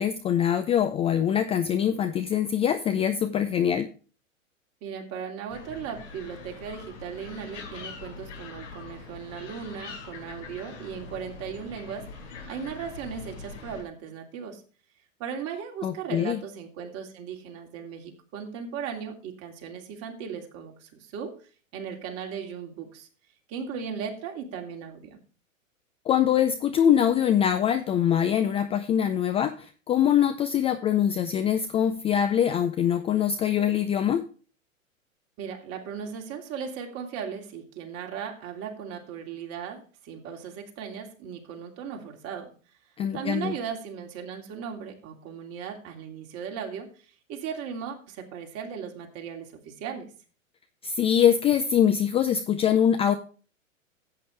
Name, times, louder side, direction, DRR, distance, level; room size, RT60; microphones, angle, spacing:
voice 1, 0.0-3.9 15.8-16.4 26.1-34.2 43.0-43.5 50.8-53.1, left 9 dB, 15° left, 9 dB, 0.5 m, -23 dB
voice 2, 4.8-14.6 15.2-23.1 23.5-25.2 35.4-42.5 43.1-50.1, right 7 dB, 35° right, 2 dB, 2.9 m, -37 dB
sound 1, 5.5-13.8, left 4 dB, 65° left, 4.2 m, -43 dB
13.5 x 8.7 x 3.2 m, 0.37 s
hypercardioid pair, 110°, 40 cm